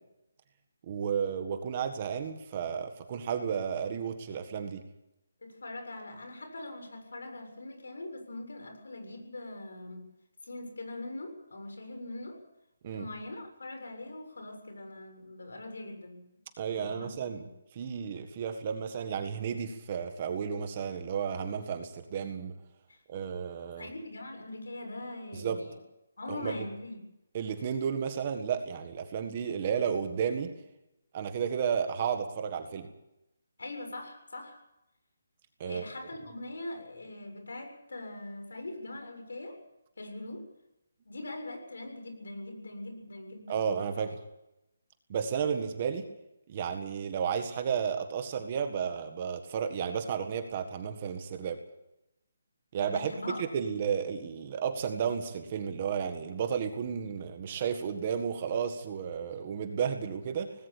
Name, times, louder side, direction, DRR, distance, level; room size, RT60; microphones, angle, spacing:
voice 1, 0.9-4.8 12.8-13.1 16.6-17.4 17.7-22.5 23.1-23.9 25.3-25.6 26.3-26.5 27.3-30.5 31.1-32.9 35.6-35.8 43.5-44.1 45.1-46.1 46.5-51.6 52.7-53.1 53.4-60.5, right 7 dB, 20° right, 7 dB, 1.6 m, -32 dB
voice 2, 5.4-10.1 10.4-12.4 12.9-16.2 16.7-17.5 22.9-23.0 23.8-25.8 26.2-27.1 33.6-34.6 35.6-39.6 40.0-40.5 41.1-43.6 44.0-44.1 52.9-53.4, left 2 dB, 80° left, 6 dB, 7.2 m, -42 dB
19.0 x 17.0 x 8.5 m, 0.88 s
hypercardioid pair, 180°, 0 cm